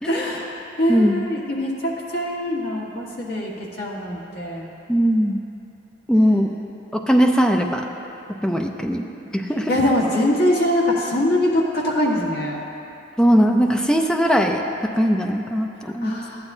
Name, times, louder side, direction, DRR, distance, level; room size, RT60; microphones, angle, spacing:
voice 1, 0.1-4.7 9.7-12.6 16.0-16.5, left 1 dB, 60° left, -4 dB, 1.5 m, -23 dB
voice 2, 0.9-1.2 4.9-5.4 6.1-6.5 6.9-7.9 8.4-9.0 9.3-9.7 13.2-14.6 15.0-16.1, equal, 5° left, 3 dB, 0.5 m, -19 dB
13.5 x 9.8 x 2.7 m, 2.9 s
head